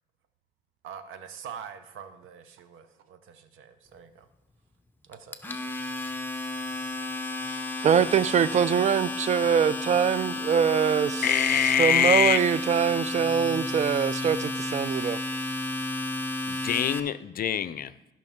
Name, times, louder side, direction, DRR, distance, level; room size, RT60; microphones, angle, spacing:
voice 1, 0.8-4.3 5.1-5.4, right 7 dB, 85° right, 10 dB, 0.9 m, -44 dB
Domestic sounds home sounds, 5.1-17.0, left 2 dB, 10° left, 0.8 m, -32 dB
voice 2, 7.8-15.2, right 8 dB, 35° right, 16 dB, 0.4 m, -24 dB
voice 3, 11.2-12.4 16.5-17.9, left 9 dB, 50° left, 15 dB, 0.5 m, -24 dB
14.0 x 5.8 x 3.6 m, 0.89 s
cardioid pair, 90°, 20 cm